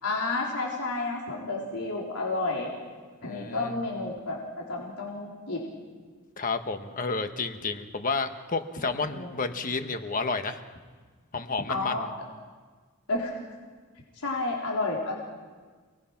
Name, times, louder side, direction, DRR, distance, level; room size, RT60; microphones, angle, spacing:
voice 1, 0.0-2.7 3.2-5.6 8.9-9.3 11.7-12.1 13.1-13.4 14.1-15.1, left 2 dB, 85° left, -3 dB, 3.9 m, -31 dB
voice 2, 3.2-3.8 6.4-10.6 11.3-12.1, left 4 dB, 40° left, 7 dB, 1.3 m, -31 dB
29.5 x 20.0 x 5.9 m, 1.5 s
head